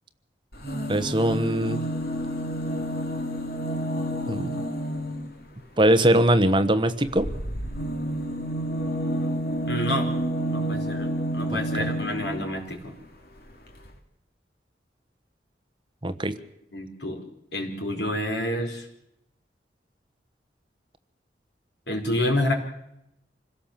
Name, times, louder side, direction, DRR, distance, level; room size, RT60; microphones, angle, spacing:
sound 1, 0.5-5.4 7.0-12.5 13.5-13.6 13.8-13.9, right 1 dB, 60° left, 2.8 m, -29 dB
voice 1, 0.9-1.8 4.3-4.6 5.8-7.3 11.8-11.9 16.0-16.4, right 1 dB, 25° right, 10 dB, 1.2 m, -21 dB
voice 2, 9.7-10.1 10.5-13.0 16.7-17.2 17.5-18.9 21.9-22.5, left 1 dB, 80° left, 3 dB, 4.9 m, -28 dB
26.5 x 16.5 x 7.5 m, 0.80 s
head